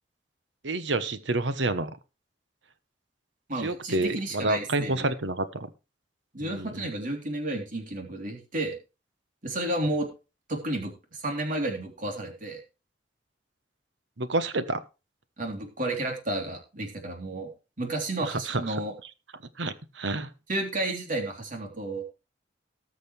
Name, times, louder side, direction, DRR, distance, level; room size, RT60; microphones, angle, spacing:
voice 1, 0.6-1.9 3.6-5.7 6.4-6.9 14.2-14.8 18.2-18.6 19.6-20.3, right 2 dB, 75° right, 12 dB, 1.1 m, -28 dB
voice 2, 3.5-5.1 6.3-8.8 9.4-10.1 10.5-12.6 15.4-17.5 17.8-18.9 20.5-22.0, right 1 dB, 45° right, 2 dB, 3.5 m, -32 dB
19.5 x 6.6 x 3.3 m, 0.30 s
head